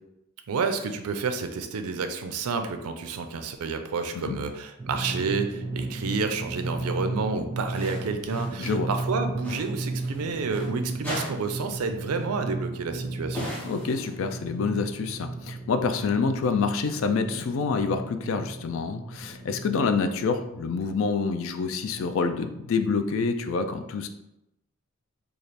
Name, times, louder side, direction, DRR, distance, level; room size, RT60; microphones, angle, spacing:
voice 1, 0.5-13.5, right 4 dB, 85° right, 7 dB, 0.4 m, -30 dB
Drum, 4.8-21.0, right 2 dB, 25° right, 0.4 m, -35 dB
sound 1, 6.4-6.7 7.7-8.6 8.9-10.7 11.0-11.8 12.1-12.3 13.3-14.5, equal, 10° left, 1.0 m, -38 dB
voice 2, 13.6-24.1, left 4 dB, 60° left, 8 dB, 0.3 m, -27 dB
3.2 x 2.4 x 4.0 m, 0.88 s
head